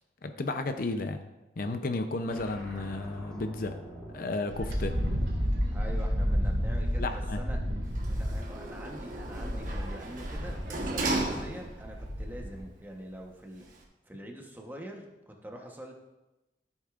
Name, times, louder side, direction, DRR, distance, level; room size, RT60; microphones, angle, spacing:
voice 1, 0.2-1.2 1.6-3.7 4.1-4.9 7.0-7.4, left 2 dB, 55° left, 7 dB, 0.6 m, -33 dB
sound 1, 2.3-5.6, equal, 5° left, 3.1 m, -47 dB
Wind, 4.5-12.6, equal, 75° right, 2.3 m, -31 dB
voice 2, 5.7-7.6 8.1-13.7 14.0-15.9, right 1 dB, 10° right, 1 dB, 1.0 m, -44 dB
Sliding door, 7.8-12.0 12.4-12.5, right 2 dB, 50° right, 1.2 m, -35 dB
13.5 x 8.1 x 2.5 m, 1.0 s
head